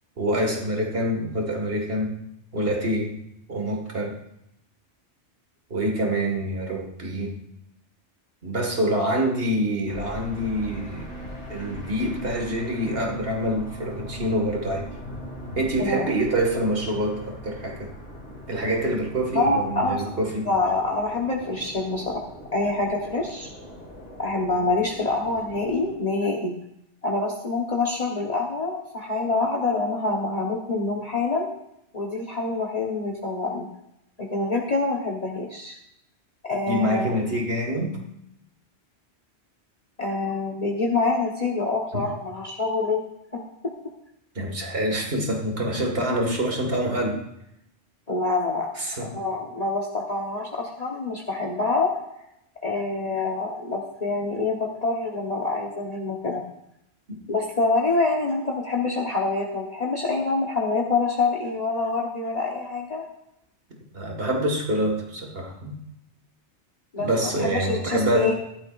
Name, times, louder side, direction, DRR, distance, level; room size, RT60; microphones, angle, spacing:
voice 1, 0.2-2.1 2.5-3.2 3.5-4.2 5.7-7.4 8.4-11.1 11.5-14.9 15.6-17.9 18.5-20.5 36.7-38.0 41.9-42.0 44.4-47.2 48.8-49.1 57.1-57.2 63.9-65.8 67.0-68.3, right 1 dB, 55° right, 1 dB, 2.2 m, -26 dB
sound 1, 9.9-26.0, equal, 75° left, 2.7 m, -40 dB
voice 2, 19.3-20.0 20.4-22.2 22.5-23.5 24.2-26.5 27.0-31.5 31.9-33.7 34.2-35.7 36.5-37.1 40.0-43.0 43.3-43.7 48.1-48.7 49.0-51.9 52.6-56.4 57.3-63.0 66.9-68.3, left 3 dB, 35° left, -1 dB, 1.3 m, -26 dB
14.5 x 12.0 x 2.6 m, 0.80 s
omnidirectional pair, 1.2 m